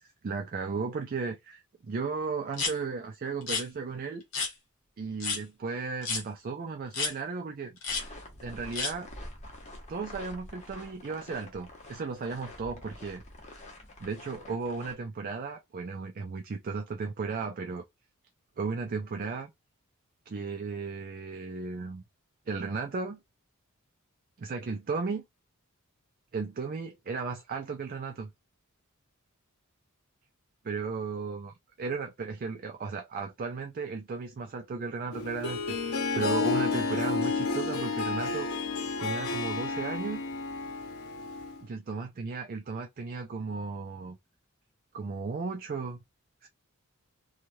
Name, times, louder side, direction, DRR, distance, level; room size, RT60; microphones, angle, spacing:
voice 1, 0.0-4.2 5.0-8.1 8.4-9.1 9.9-13.2 13.5-13.7 14.0-17.8 18.6-19.5 20.3-22.0 22.5-23.2 24.4-25.2 26.3-28.3 30.7-38.5 39.0-40.2 41.6-44.2 44.9-46.0 46.4-46.5, right 4 dB, 40° right, 0.4 m, -35 dB
sound 1, 2.5-2.7 3.4-3.6 4.3-4.5 5.2-5.4 6.0-6.2 6.9-7.1 7.8-8.0 8.7-8.9, left 4 dB, 60° left, 1.2 m, -30 dB
sound 2, 7.9-14.9, left 1 dB, 30° left, 0.9 m, -47 dB
Harp, 35.1-41.6, left 4 dB, 80° left, 0.8 m, -31 dB
3.1 x 2.3 x 2.6 m
head